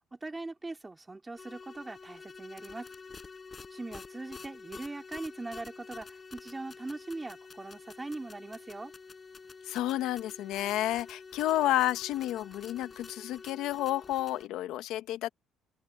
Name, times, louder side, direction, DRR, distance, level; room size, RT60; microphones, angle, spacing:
voice 1, 0.1-2.9 3.7-8.9, right 2 dB, 15° right, 4.0 m, -41 dB
sound 1, 1.4-14.5, left 4 dB, 30° left, 5.9 m, -48 dB
voice 2, 9.6-15.3, left 14 dB, 80° left, 1.5 m, -31 dB
cardioid pair, 100°, 0 cm